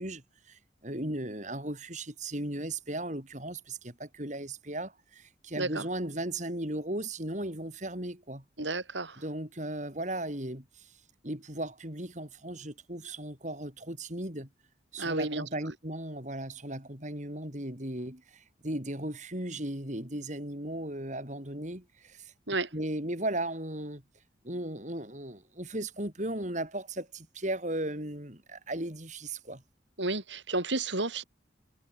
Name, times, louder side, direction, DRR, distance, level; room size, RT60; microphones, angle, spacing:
voice 1, 0.0-8.4 9.2-10.9 11.2-14.5 14.9-22.3 22.7-24.0 24.4-29.6, right 1 dB, 40° right, 5.5 m, -36 dB
voice 2, 8.6-9.2 15.0-15.5 22.5-22.7 30.0-31.2, right 2 dB, 80° right, 5.9 m, -31 dB
head